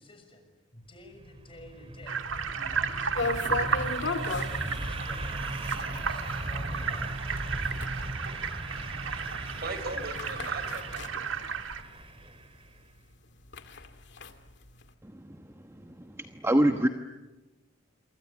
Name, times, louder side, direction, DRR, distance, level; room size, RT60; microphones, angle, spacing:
voice 1, 0.0-7.2, left 1 dB, 30° left, 6 dB, 6.3 m, -51 dB
sound 1, 1.0-12.7, right 1 dB, 30° right, 2.2 m, -38 dB
sound 2, 2.1-11.8, right 6 dB, 85° right, 1.8 m, -34 dB
sound 3, 3.1-12.3 12.6-12.7 13.1-14.9, left 3 dB, 65° left, 2.1 m, -36 dB
voice 2, 8.8-11.8, right 2 dB, 55° right, 10 dB, 4.4 m, -41 dB
voice 3, 15.0-16.9, right 1 dB, 15° right, 6 dB, 1.1 m, -27 dB
28.5 x 24.5 x 8.6 m, 1.1 s
head